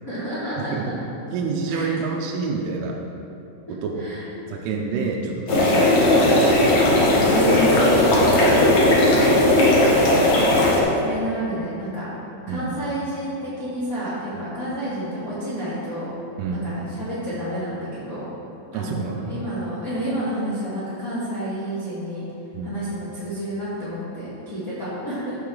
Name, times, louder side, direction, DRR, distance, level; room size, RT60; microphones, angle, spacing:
voice 1, 0.0-0.9 1.7-2.0 4.0-4.2 7.2-8.8 9.0-10.3 10.9-12.1 12.5-16.1 16.5-18.2 18.7-22.2 22.6-25.4, equal, 55° left, -13 dB, 0.9 m, -29 dB
voice 2, 0.6-0.9 1.3-3.0 3.7-4.1 4.5-6.6 10.0-10.2 12.5-12.7 14.4-14.5 16.4-16.7 18.7-19.3 22.5-22.7, right 4 dB, 85° right, -1 dB, 3.2 m, -28 dB
sound 1, 5.5-10.8, left 1 dB, 80° left, 1.6 m, -17 dB
14.0 x 5.3 x 3.8 m, 2.9 s
omnidirectional pair, 5.6 m